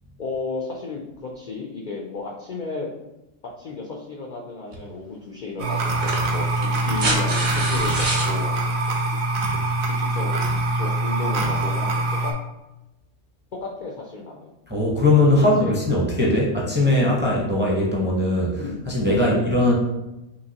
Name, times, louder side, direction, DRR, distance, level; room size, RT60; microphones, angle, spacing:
voice 1, 0.2-2.9 3.4-9.6 9.8-12.3 13.6-14.5 15.3-15.8 16.3-16.5 18.6-18.8 19.1-19.4, left 3 dB, 70° left, -1 dB, 0.4 m, -33 dB
sound 1, 4.7-4.9 5.9-8.3 9.8-9.9, right 2 dB, 45° right, 0.9 m, -27 dB
sound 2, 5.6-12.3, right 2 dB, 75° right, 1.1 m, -24 dB
voice 2, 14.7-19.7, left 2 dB, 10° right, -3 dB, 0.6 m, -20 dB
5.9 x 2.8 x 2.8 m, 0.97 s
omnidirectional pair, 1.5 m